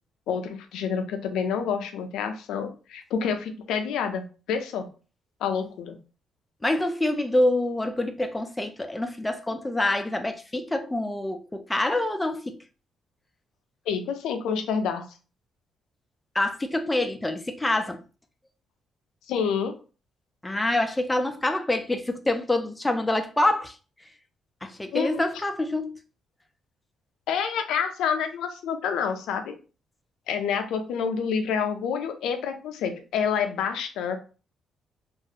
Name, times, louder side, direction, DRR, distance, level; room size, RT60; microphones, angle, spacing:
voice 1, 0.3-4.9 5.4-6.0 13.9-15.1 19.3-19.8 24.9-25.2 27.3-29.5 30.3-34.2, left 6 dB, 85° left, 0.4 m, -28 dB
voice 2, 6.6-12.6 16.4-18.0 20.4-23.8 24.6-26.0, left 1 dB, 15° left, 0.3 m, -26 dB
2.5 x 2.3 x 2.7 m
cardioid pair, 90°, 0 cm